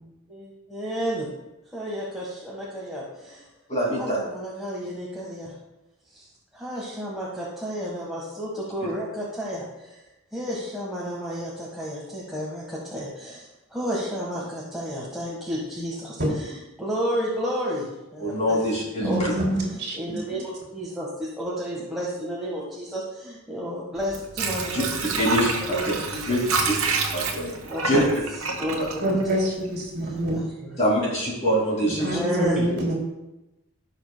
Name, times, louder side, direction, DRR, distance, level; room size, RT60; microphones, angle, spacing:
voice 1, 0.3-1.3 1.7-3.4 3.8-5.5 6.1-6.3 6.5-10.0 10.3-16.5 16.8-17.9 18.1-18.6 19.0-19.2 19.9-24.9 25.1-25.3 25.6-26.3 27.7-28.1 28.6-29.2 30.0-30.4 31.9-32.7, equal, ahead, -7 dB, 1.5 m, -31 dB
voice 2, 3.7-4.2 18.2-19.3 24.7-24.8 25.2-25.9 26.3-26.4 27.1-27.6 27.8-28.0 30.8-32.2, equal, 30° left, -3 dB, 2.5 m, -24 dB
voice 3, 19.0-20.2 29.0-30.4 32.0-32.9, right 1 dB, 45° right, -4 dB, 3.1 m, -26 dB
Water / Sink (filling or washing), 24.0-29.8 30.2-30.3, right 4 dB, 75° right, 1.2 m, -28 dB
16.0 x 6.5 x 2.3 m, 0.97 s
head